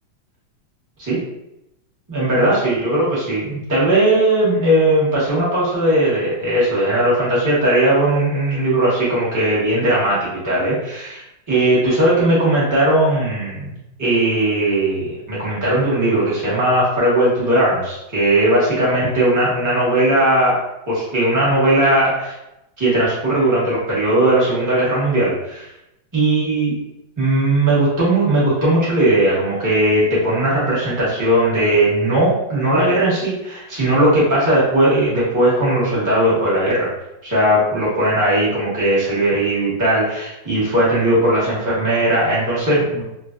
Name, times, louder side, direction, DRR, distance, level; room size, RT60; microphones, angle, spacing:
voice 1, 2.1-13.7 14.0-20.6 20.9-22.4 22.8-25.7 26.1-26.8 27.2-36.9 37.2-43.0, right 1 dB, 30° right, -8 dB, 0.3 m, -18 dB
3.2 x 2.3 x 2.4 m, 0.88 s
omnidirectional pair, 2.3 m